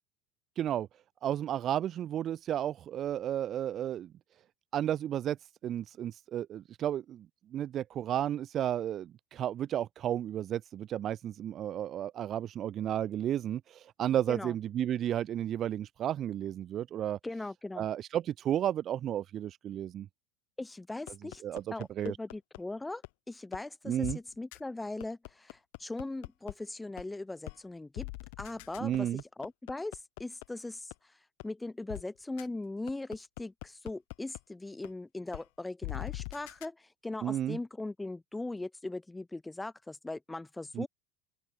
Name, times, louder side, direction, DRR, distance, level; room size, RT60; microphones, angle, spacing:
voice 1, 0.6-0.9 1.2-4.1 4.7-5.4 5.6-17.2 17.8-20.1 21.4-21.6 22.0-22.2 23.9-24.2 28.8-29.2 37.2-37.6 40.7-40.9, right 11 dB, 30° right, 0.6 m, -33 dB
voice 2, 17.2-17.9 20.6-21.4 21.7-28.1 28.4-29.1 29.4-31.1 31.4-40.9, left 2 dB, 5° left, 5.5 m, -40 dB
sound 1, 21.1-22.6 23.0-23.1 23.5-23.6 24.0-24.1 24.5-24.6 25.0-26.5 27.0-27.1 27.5-27.6 28.0-30.4 30.9-31.0 31.4-31.5 31.9-32.0 32.4-32.5 32.9-34.4 34.8-34.9 35.3-35.4 35.8-36.7, left 31 dB, 60° left, 4.3 m, -41 dB
open air
supercardioid pair, 165°, 0 cm